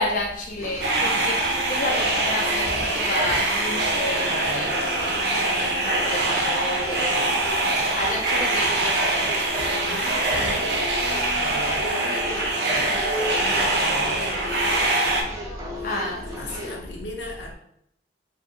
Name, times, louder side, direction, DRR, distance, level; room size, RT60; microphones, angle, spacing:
voice 1, 0.0-1.4 1.7-7.3 8.0-9.3 15.8-16.4, left 1 dB, 50° left, -1 dB, 0.4 m, -30 dB
sound 1, 0.6-16.8, left 1 dB, 15° right, 0.4 m, -36 dB
sound 2, 0.8-15.2, right 2 dB, 70° right, 0.5 m, -24 dB
voice 2, 9.7-14.9 15.8-16.0 16.4-17.5, left 1 dB, 90° left, -1 dB, 0.7 m, -37 dB
2.6 x 2.5 x 2.7 m, 0.74 s
head